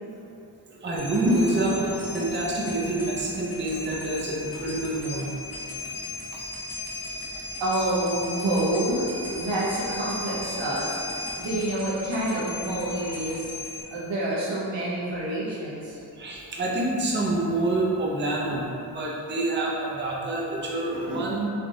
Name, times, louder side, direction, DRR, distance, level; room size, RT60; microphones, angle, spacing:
voice 1, 0.8-5.4 9.3-9.7 16.2-21.5, right 1 dB, 25° right, -4 dB, 0.5 m, -27 dB
sound 1, 1.0-13.8, left 3 dB, 60° left, 0.7 m, -38 dB
sound 2, 4.7-4.8 5.1-5.2 5.5-5.6 5.9-6.0 6.4-11.4, left 1 dB, 15° left, 1.0 m, -38 dB
voice 2, 7.6-13.5 13.9-16.0, right 1 dB, 85° right, -7 dB, 0.8 m, -28 dB
3.3 x 2.4 x 2.6 m, 2.7 s
cardioid pair, 45°, 43 cm